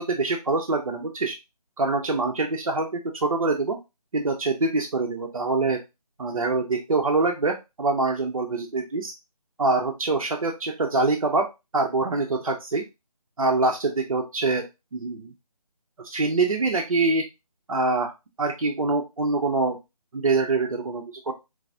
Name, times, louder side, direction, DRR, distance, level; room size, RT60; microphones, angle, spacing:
voice 1, 0.0-1.3 1.8-3.8 4.1-5.8 6.2-9.1 9.6-12.8 13.4-14.6 14.9-15.3 16.0-17.2 17.7-18.1 18.4-19.8 20.1-21.3, right 3 dB, 60° right, 1 dB, 0.6 m, -24 dB
4.7 x 2.0 x 2.4 m, 0.23 s
figure-of-eight pair, 170°, 20 cm